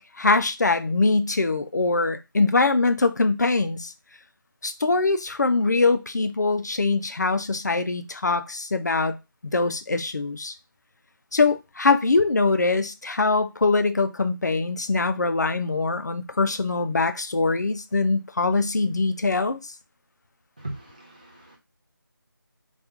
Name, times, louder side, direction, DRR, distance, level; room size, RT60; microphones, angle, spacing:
voice 1, 0.2-3.9 4.6-9.2 9.4-10.5 11.3-19.6, left 3 dB, 50° left, 0.4 m, -23 dB
voice 2, 20.6-21.6, right 1 dB, 20° right, 0.6 m, -38 dB
2.9 x 2.3 x 3.5 m
figure-of-eight pair, 175°, 12 cm